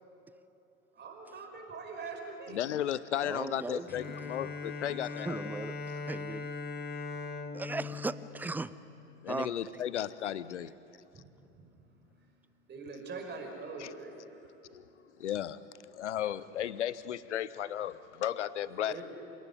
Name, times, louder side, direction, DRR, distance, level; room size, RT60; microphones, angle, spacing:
voice 1, 0.9-2.6 11.6-11.7 12.7-14.5 18.7-19.0, right 4 dB, 30° right, 2 dB, 5.2 m, -43 dB
voice 2, 2.5-5.4 9.2-10.7 13.8-13.9 14.7-14.8 15.2-15.6 15.9-19.0, left 11 dB, 75° left, 18 dB, 0.8 m, -34 dB
voice 3, 3.2-3.9 5.2-6.5 7.5-8.7 9.3-9.5, right 3 dB, 5° right, 17 dB, 0.5 m, -37 dB
Bowed string instrument, 3.9-9.4, left 3 dB, 25° left, 1.9 m, -40 dB
28.0 x 16.5 x 9.9 m, 2.9 s
figure-of-eight pair, 70°, 35 cm